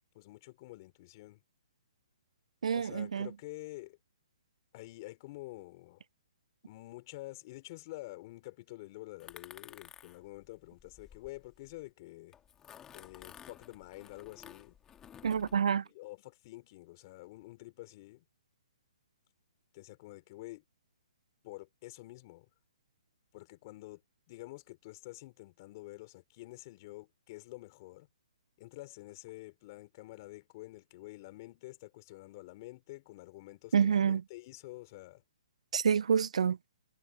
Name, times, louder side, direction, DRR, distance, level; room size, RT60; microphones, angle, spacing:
voice 1, 0.1-1.4 2.7-4.0 4.7-6.0 6.6-12.4 12.9-14.7 15.8-18.2 19.7-20.6 21.4-22.5 23.3-24.0 24.3-28.1 28.6-35.2, left 20 dB, 35° left, 4.0 m, -48 dB
voice 2, 2.6-3.3 15.2-15.8 33.7-34.2 35.7-36.6, right 7 dB, 80° right, 0.3 m, -27 dB
sound 1, 9.2-11.8 12.3-15.6, left 9 dB, 15° left, 2.1 m, -54 dB
hypercardioid pair, 155°, 3 cm